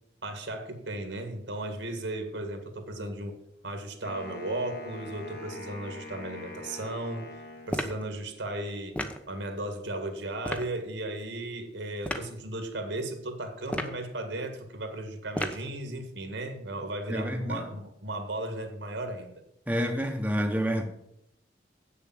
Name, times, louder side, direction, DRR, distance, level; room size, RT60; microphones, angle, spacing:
voice 1, 0.2-3.4 3.6-7.4 7.7-19.3, right 1 dB, 75° right, 1.9 m, -36 dB
Wind instrument woodwind instrument, 4.0-8.3, left 1 dB, 60° left, 2.2 m, -43 dB
sound 1, 7.7-8.0 9.0-9.2 10.4-10.7 12.0-12.3 13.6-14.0 15.3-15.7, left 1 dB, 5° left, 0.8 m, -32 dB
voice 2, 17.1-17.7 19.7-20.8, equal, 10° right, 1.1 m, -28 dB
8.3 x 6.9 x 7.5 m
head